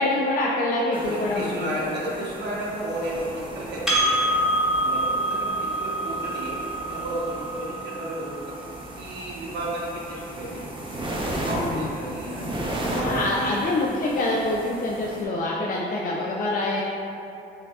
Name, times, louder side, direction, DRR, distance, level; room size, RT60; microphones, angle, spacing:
voice 1, 0.0-1.8 11.5-11.9 13.0-16.8, left 2 dB, 45° left, -3 dB, 0.4 m, -25 dB
sound 1, 0.9-15.2, right 1 dB, 25° right, 0.7 m, -35 dB
voice 2, 0.9-4.5 4.7-6.5 6.9-8.5 8.9-10.8 11.3-13.6, right 1 dB, 60° right, -5 dB, 1.0 m, -33 dB
Percussion, 3.9-8.7, right 1 dB, ahead, 1.0 m, -26 dB
5.5 x 2.7 x 2.3 m, 2.8 s
cardioid pair, 90°, 20 cm